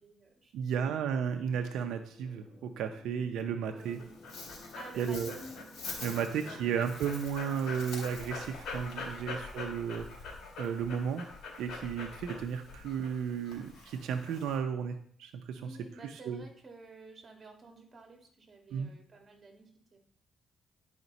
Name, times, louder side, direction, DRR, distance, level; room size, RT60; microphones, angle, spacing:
voice 1, 0.0-1.0 3.7-4.1 4.7-6.7 9.0-9.4 15.5-20.0, right 3 dB, 35° right, 2 dB, 2.1 m, -52 dB
voice 2, 0.5-4.0 5.0-5.3 6.0-10.3 10.6-11.3 11.6-16.4 18.7-18.9, right 7 dB, 90° right, 6 dB, 0.6 m, -34 dB
sound 1, 1.9-6.9, left 1 dB, 30° left, 2.2 m, -55 dB
Dog, 3.8-14.6, left 4 dB, 75° left, 3.1 m, -43 dB
11.0 x 5.0 x 4.0 m, 0.62 s
cardioid pair, 105°, 0 cm